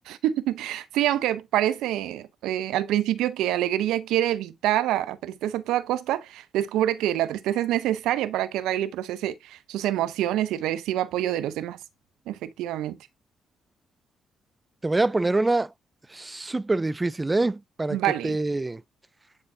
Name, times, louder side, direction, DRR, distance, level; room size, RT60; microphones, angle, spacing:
voice 1, 0.1-11.8 12.3-13.0 17.9-18.4, right 13 dB, 70° right, 0.7 m, -26 dB
voice 2, 14.8-15.7 16.1-18.8, right 2 dB, 20° right, 0.4 m, -25 dB
9.8 x 4.0 x 2.7 m
hypercardioid pair, 40°, 0 cm